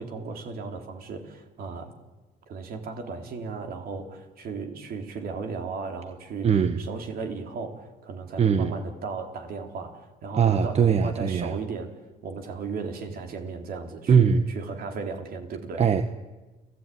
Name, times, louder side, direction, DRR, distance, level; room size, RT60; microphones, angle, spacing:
voice 1, 0.0-1.9 2.5-11.9 12.2-15.9, right 4 dB, 60° right, 4 dB, 3.8 m, -36 dB
voice 2, 6.4-6.8 8.4-8.7 10.3-11.6 14.1-14.4 15.8-16.1, right 7 dB, 40° right, 9 dB, 1.3 m, -21 dB
30.0 x 16.5 x 9.5 m, 1.2 s
cardioid pair, 110°, 17 cm